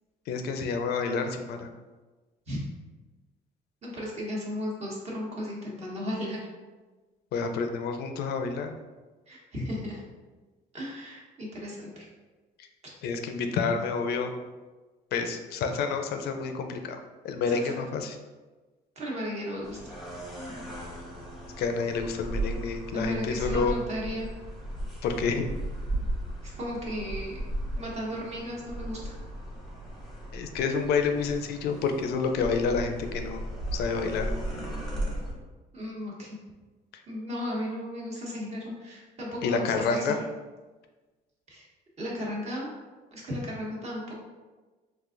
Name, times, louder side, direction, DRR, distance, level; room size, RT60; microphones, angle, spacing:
voice 1, 0.3-1.7 7.3-8.8 13.0-14.3 15.1-17.0 17.2-18.1 21.6-23.7 25.0-25.5 30.3-33.4 33.7-34.3 39.4-40.2, left 5 dB, 70° left, 6 dB, 0.4 m, -29 dB
voice 2, 3.8-6.4 9.3-10.0 10.7-12.1 17.5-17.7 19.0-20.0 22.5-22.6 22.9-24.3 26.4-27.4 27.8-29.2 35.7-36.3 37.1-40.3 41.5-41.7 42.0-42.7 43.1-44.1, equal, 40° right, -3 dB, 1.1 m, -35 dB
sound 1, 19.6-35.3, right 1 dB, ahead, 0.8 m, -36 dB
3.9 x 2.6 x 2.5 m, 1.2 s
cardioid pair, 110°, 17 cm